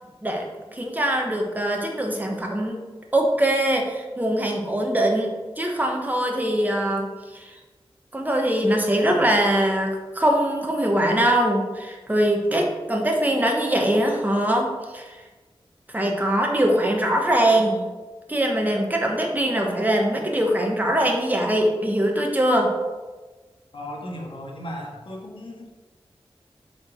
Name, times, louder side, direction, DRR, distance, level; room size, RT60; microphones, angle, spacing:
voice 1, 0.2-2.8 3.1-7.6 8.1-15.2 15.9-17.9 18.3-22.7, right 1 dB, 15° right, 1 dB, 1.4 m, -22 dB
voice 2, 23.7-25.7, equal, 60° left, 0 dB, 1.7 m, -36 dB
7.0 x 4.9 x 4.7 m, 1.3 s
wide cardioid pair, 60°, 10 cm